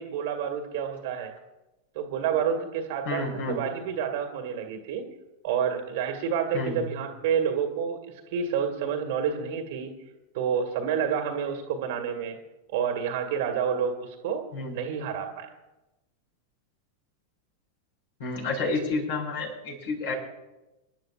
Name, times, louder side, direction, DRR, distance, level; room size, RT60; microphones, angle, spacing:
voice 1, 0.0-1.3 1.9-5.1 5.4-9.9 10.3-12.4 12.7-14.4 14.7-15.5, right 7 dB, 50° right, 4 dB, 1.9 m, -29 dB
voice 2, 3.0-3.6 6.5-6.9 14.5-14.7 18.2-20.1, left 3 dB, 55° left, -1 dB, 6.4 m, -30 dB
28.0 x 12.0 x 2.5 m, 1.0 s
figure-of-eight pair, 90°, 0 cm